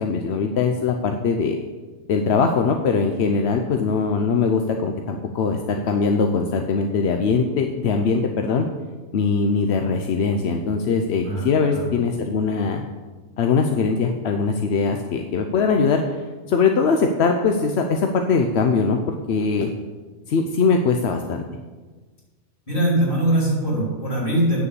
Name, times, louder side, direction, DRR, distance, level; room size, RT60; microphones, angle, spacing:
voice 1, 0.0-1.6 2.1-8.7 9.1-12.8 13.4-16.0 16.5-19.7 20.3-21.4, left 5 dB, 60° left, 4 dB, 0.8 m, -21 dB
voice 2, 11.2-11.9 22.7-24.6, right 1 dB, 40° left, -4 dB, 3.6 m, -22 dB
9.3 x 6.8 x 6.9 m, 1.3 s
omnidirectional pair, 1.5 m